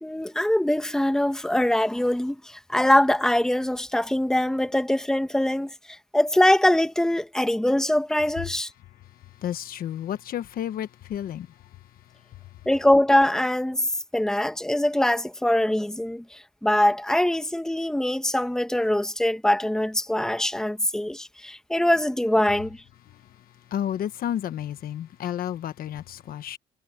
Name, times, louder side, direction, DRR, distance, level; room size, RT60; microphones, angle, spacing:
voice 1, 0.0-8.7 12.6-22.8, left 1 dB, 5° left, 1.6 m, -23 dB
voice 2, 9.4-11.5 23.7-26.6, left 10 dB, 60° left, 1.3 m, -31 dB
cardioid pair, 110°, 17 cm